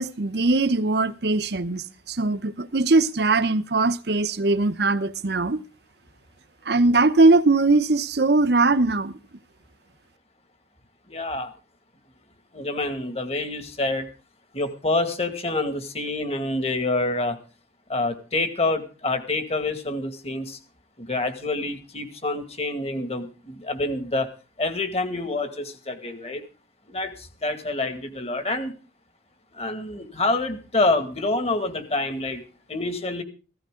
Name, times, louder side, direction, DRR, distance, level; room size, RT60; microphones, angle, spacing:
voice 1, 0.0-5.6 6.7-9.1, right 3 dB, 60° right, 0.8 m, -20 dB
voice 2, 11.1-11.5 12.5-14.1 14.5-17.4 17.9-20.6 21.0-24.3 24.6-26.4 26.9-28.7 29.6-32.4 32.7-33.2, left 2 dB, 35° left, 2.1 m, -27 dB
15.5 x 15.0 x 3.8 m
head